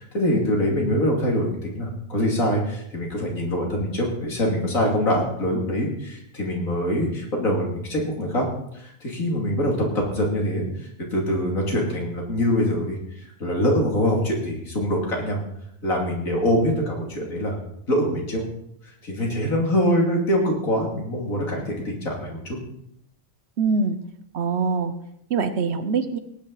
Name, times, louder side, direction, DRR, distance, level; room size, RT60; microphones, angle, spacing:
voice 1, 0.0-8.5 8.7-13.0 13.4-15.4 15.8-17.6 17.9-18.4 19.0-22.6, equal, 85° left, -1 dB, 3.2 m, -24 dB
voice 2, 23.6-24.0 24.3-24.9 25.3-26.2, right 4 dB, 55° right, 10 dB, 1.1 m, -23 dB
18.5 x 8.8 x 4.0 m, 0.74 s
omnidirectional pair, 1.4 m